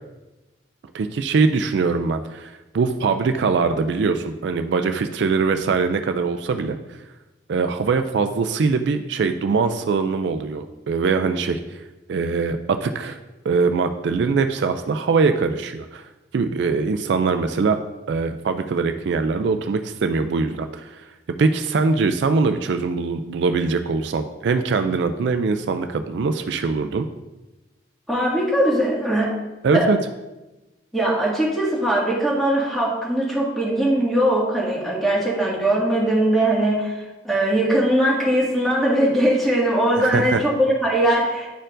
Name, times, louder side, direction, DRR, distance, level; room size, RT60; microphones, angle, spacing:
voice 1, 0.9-6.8 7.5-11.8 12.1-13.2 13.5-17.8 18.1-21.1 21.4-27.1 29.6-30.0 40.0-40.4, right 4 dB, 65° right, 8 dB, 0.3 m, -22 dB
voice 2, 28.1-29.3 29.7-29.9 30.9-41.5, right 1 dB, ahead, -6 dB, 1.7 m, -20 dB
10.0 x 4.4 x 2.5 m, 1.1 s
head